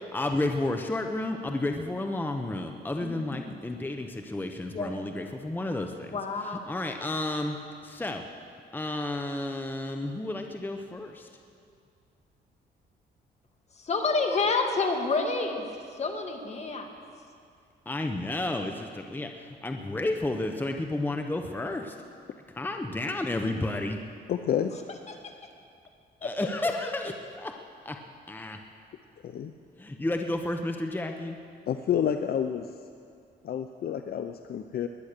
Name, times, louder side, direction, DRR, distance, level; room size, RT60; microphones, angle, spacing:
voice 1, 0.1-6.1 6.4-7.6 7.8-8.3 8.7-11.3 17.9-22.0 22.6-24.0 26.2-27.5 27.8-28.0 28.3-28.6 29.8-31.4, left 2 dB, 10° left, 5 dB, 0.9 m, -31 dB
voice 2, 3.0-3.5 4.7-4.9 6.1-6.6 13.8-15.6 16.0-16.9 26.2-26.3, left 3 dB, 35° left, 3 dB, 2.0 m, -28 dB
voice 3, 24.3-24.7 29.2-29.5 31.7-32.7 33.4-34.9, left 9 dB, 55° left, 8 dB, 0.6 m, -29 dB
20.5 x 10.0 x 6.7 m, 2.4 s
cardioid pair, 105°, 18 cm